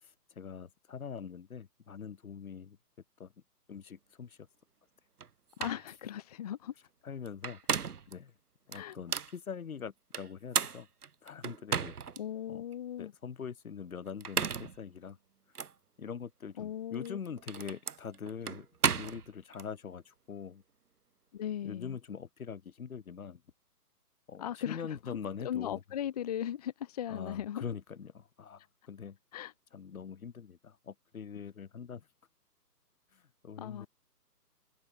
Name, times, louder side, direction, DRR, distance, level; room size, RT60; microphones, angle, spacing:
voice 1, 0.0-2.8 3.2-3.3 3.7-4.5 7.0-7.6 8.1-8.3 8.7-10.9 11.2-11.9 12.5-12.6 13.0-15.2 16.0-18.7 19.0-20.6 21.6-23.4 24.3-25.8 27.1-29.2 29.7-32.1 33.1-33.9, left 7 dB, 55° left, 1.9 m, -43 dB
sound 1, 5.2-5.3 5.6-5.8 7.3-8.1 8.7-9.3 10.1-12.2 12.7-12.8 14.1-14.8 15.5-15.7 16.9-19.7, right 6 dB, 65° right, 1.7 m, -34 dB
voice 2, 5.6-6.7 8.7-9.0 12.2-13.1 16.6-17.2 21.3-22.0 24.4-25.2 25.4-27.6 29.3-29.5 33.6-33.9, left 10 dB, 25° left, 1.0 m, -38 dB
figure-of-eight pair, 145°, 49 cm